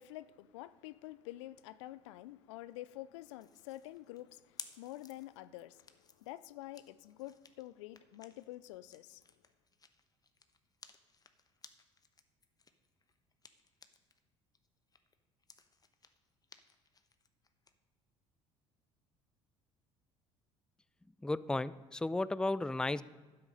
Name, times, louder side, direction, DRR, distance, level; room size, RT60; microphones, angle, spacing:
voice 1, 0.0-9.2, left 15 dB, 75° left, 17 dB, 0.4 m, -48 dB
sound 1, 3.4-14.2 14.5-17.7, left 4 dB, 25° left, 1.0 m, -58 dB
voice 2, 21.2-23.0, left 2 dB, 5° left, 17 dB, 0.4 m, -34 dB
12.0 x 7.8 x 5.3 m, 1.3 s
hypercardioid pair, 60°, 15 cm